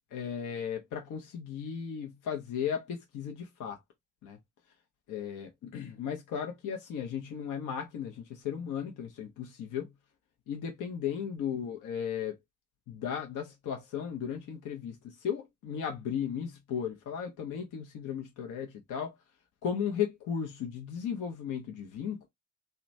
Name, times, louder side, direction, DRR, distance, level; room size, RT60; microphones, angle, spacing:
voice 1, 0.1-3.8 4.2-4.4 5.1-9.9 10.5-12.4 12.9-19.2 19.6-22.3, left 8 dB, 60° left, 0.7 m, -36 dB
2.9 x 2.2 x 2.5 m
hypercardioid pair, 40°, 35 cm